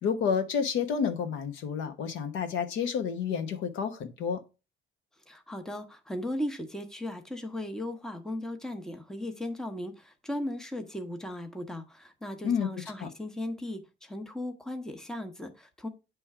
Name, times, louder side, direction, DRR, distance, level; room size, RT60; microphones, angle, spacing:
voice 1, 0.0-4.4 12.4-12.7 13.0-13.1, left 6 dB, 80° left, 1.2 m, -30 dB
voice 2, 5.3-15.9, left 1 dB, 5° left, 0.8 m, -37 dB
8.9 x 3.2 x 4.6 m
cardioid pair, 145°, 19 cm